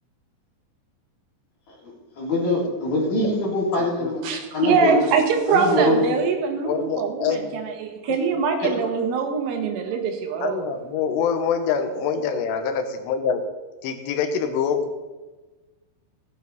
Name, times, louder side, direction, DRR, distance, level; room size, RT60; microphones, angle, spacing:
voice 1, 1.8-4.3 4.5-5.1 5.5-6.0 8.6-8.7, left 1 dB, 40° left, -4 dB, 4.0 m, -23 dB
voice 2, 4.2-10.7, right 5 dB, 85° right, 4 dB, 3.9 m, -23 dB
voice 3, 6.6-7.6 8.0-8.4 10.4-13.4 13.8-14.8, left 6 dB, 90° left, 7 dB, 3.6 m, -25 dB
17.5 x 9.1 x 4.1 m, 1.2 s
omnidirectional pair, 5.5 m